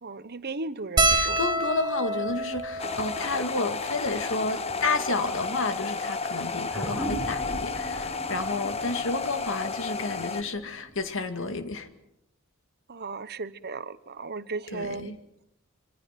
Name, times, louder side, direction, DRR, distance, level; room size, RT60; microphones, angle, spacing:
voice 1, 0.0-1.4 12.9-15.1, right 3 dB, 50° right, 1.0 m, -36 dB
sound 1, 1.0-5.6 6.3-6.4 6.6-6.8 8.1-8.3 9.7-9.8 10.1-10.3, right 2 dB, 20° right, 1.7 m, -29 dB
voice 2, 1.1-11.9 14.7-15.2, left 3 dB, 65° left, 2.3 m, -31 dB
sound 2, 2.8-10.4, left 4 dB, 30° left, 1.2 m, -32 dB
sound 3, 6.7-11.6, right 2 dB, 5° right, 7.9 m, -39 dB
26.0 x 25.5 x 6.0 m
head